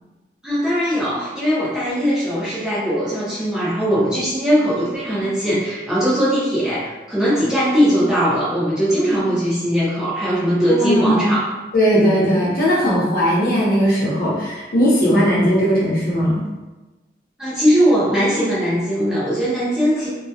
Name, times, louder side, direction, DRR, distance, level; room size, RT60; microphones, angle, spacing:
voice 1, 0.4-11.5 17.4-20.1, equal, 5° right, -10 dB, 0.5 m, -19 dB
voice 2, 10.8-11.2 11.7-16.4, equal, 50° left, -6 dB, 0.7 m, -18 dB
2.2 x 2.1 x 2.7 m, 1.1 s
head